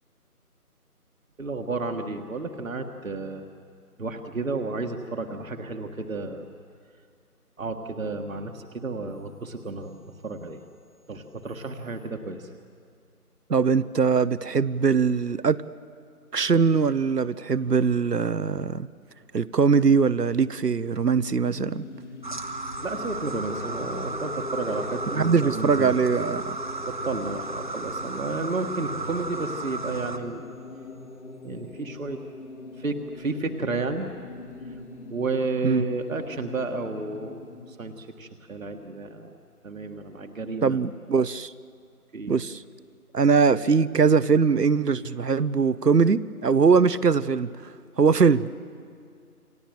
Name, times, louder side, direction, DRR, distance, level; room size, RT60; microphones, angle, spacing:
voice 1, 1.4-3.5 4.0-6.5 7.6-10.6 11.1-12.5 22.8-26.0 26.8-30.4 31.4-32.2 32.8-34.1 35.1-37.4 37.7-39.4 39.6-40.8 42.1-42.3, right 3 dB, 55° right, 5 dB, 1.7 m, -32 dB
voice 2, 13.5-15.6 16.3-18.9 19.3-21.8 25.1-26.6 35.6-35.8 40.6-41.5 42.3-42.6 43.1-47.5 48.0-48.5, right 5 dB, 80° right, 17 dB, 1.0 m, -21 dB
sound 1, 21.5-37.7, left 3 dB, 45° left, 2.9 m, -41 dB
sound 2, 22.2-30.2, right 3 dB, 30° right, 1.1 m, -34 dB
29.0 x 25.5 x 7.8 m, 2.3 s
figure-of-eight pair, 160°, 47 cm